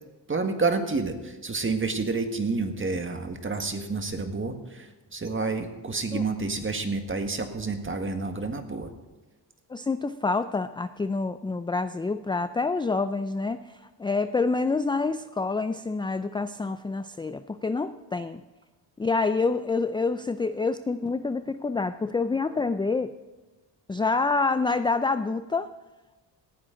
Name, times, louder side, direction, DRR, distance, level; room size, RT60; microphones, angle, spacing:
voice 1, 0.3-8.9, right 3 dB, 25° right, 6 dB, 1.7 m, -29 dB
voice 2, 9.7-18.4 19.0-23.1 23.9-25.7, left 3 dB, 10° left, 11 dB, 0.3 m, -27 dB
18.0 x 14.5 x 3.9 m, 1.1 s
cardioid pair, 95°, 44 cm